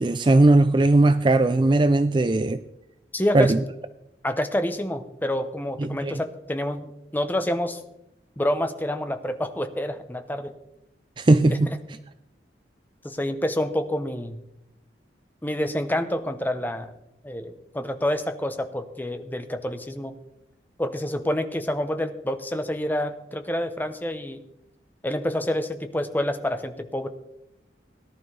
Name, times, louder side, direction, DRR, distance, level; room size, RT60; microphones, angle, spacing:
voice 1, 0.0-2.6 3.3-3.6 5.8-6.1 11.2-11.7, right 2 dB, 25° right, 11 dB, 0.4 m, -18 dB
voice 2, 3.1-3.5 4.2-6.9 7.1-7.8 8.4-10.5 11.5-11.6 13.0-14.4 15.4-16.9 17.2-20.1 20.8-24.4 25.0-27.1, left 1 dB, 10° left, 8 dB, 0.8 m, -28 dB
18.0 x 11.5 x 3.3 m, 0.84 s
head